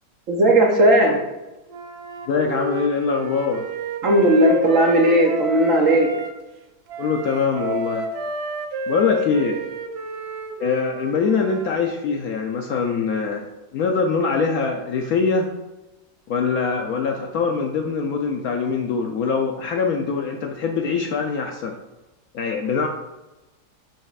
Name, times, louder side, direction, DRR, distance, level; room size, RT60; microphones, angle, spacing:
voice 1, 0.3-1.2 4.0-6.1, right 1 dB, 55° right, 1 dB, 1.0 m, -16 dB
Wind instrument woodwind instrument, 1.7-6.3 6.9-11.8, right 2 dB, 70° right, 0.6 m, -30 dB
voice 2, 2.3-3.6 7.0-8.1 8.9-9.6 10.6-15.5 16.3-21.7 22.3-22.9, left 5 dB, 70° left, 4 dB, 0.9 m, -23 dB
8.8 x 5.3 x 2.4 m, 1.1 s
omnidirectional pair, 1.9 m